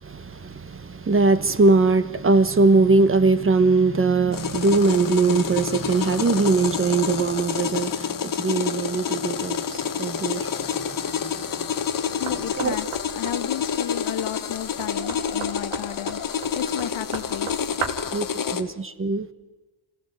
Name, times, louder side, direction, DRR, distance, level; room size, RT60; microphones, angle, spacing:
voice 1, 0.0-11.7 12.0-12.2 12.6-12.8 18.1-19.3, right 3 dB, 25° right, 1.2 m, -21 dB
sound 1, 4.3-18.6, left 7 dB, 40° left, 1.3 m, -28 dB
voice 2, 11.6-18.7, left 12 dB, 75° left, 1.3 m, -34 dB
Knock, 12.3-18.2, right 6 dB, 75° right, 2.5 m, -36 dB
26.5 x 16.0 x 7.7 m
cardioid pair, 100°, 49 cm